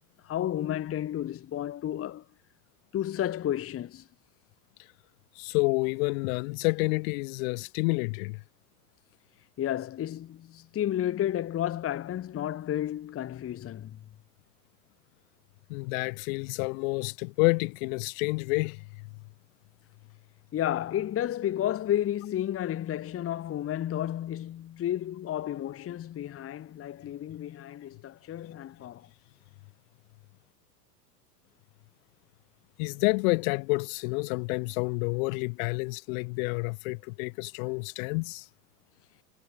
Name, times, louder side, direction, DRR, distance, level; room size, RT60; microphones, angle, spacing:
voice 1, 0.2-2.2 2.9-4.0 9.6-14.0 20.5-29.1, left 11 dB, 25° left, 1.4 m, -32 dB
voice 2, 5.4-8.4 15.7-18.9 32.8-38.5, left 30 dB, 55° left, 1.7 m, -29 dB
hypercardioid pair, 95°, 50 cm